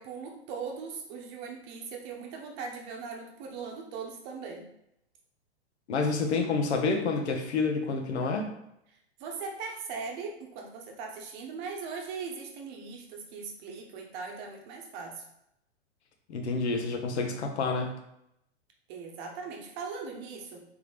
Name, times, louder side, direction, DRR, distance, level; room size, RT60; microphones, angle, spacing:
voice 1, 0.0-4.7 9.2-15.2 18.9-20.6, right 5 dB, 40° right, 2 dB, 0.9 m, -39 dB
voice 2, 5.9-8.5 16.3-18.0, left 4 dB, 75° left, 4 dB, 0.9 m, -28 dB
3.6 x 3.5 x 3.1 m, 0.79 s
hypercardioid pair, 115°, 34 cm